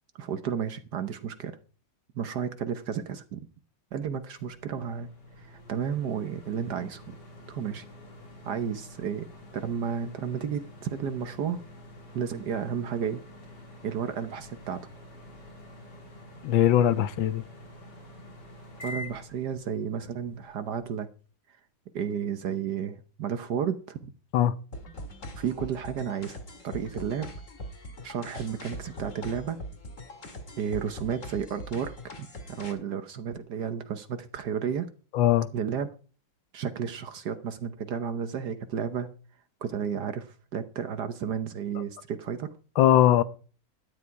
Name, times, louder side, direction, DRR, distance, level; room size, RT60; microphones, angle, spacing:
voice 1, 0.2-1.6 2.1-3.5 3.9-5.1 5.4-7.2 7.5-7.8 8.4-9.3 9.5-11.6 12.1-13.2 13.8-14.8 18.8-21.1 21.5-21.6 21.9-24.1 25.4-26.4 26.6-27.3 28.0-29.6 30.6-34.9 35.5-35.9 36.5-39.1 39.6-42.5, right 7 dB, 65° right, 1.4 m, -32 dB
sound 1, 4.4-20.8, left 1 dB, 65° left, 3.9 m, -47 dB
voice 2, 16.4-17.4 24.3-24.5 35.1-35.5 42.8-43.2, left 11 dB, 90° left, 1.6 m, -20 dB
sound 2, 24.7-32.7, equal, 45° left, 2.3 m, -42 dB
12.5 x 10.0 x 4.6 m
omnidirectional pair, 2.0 m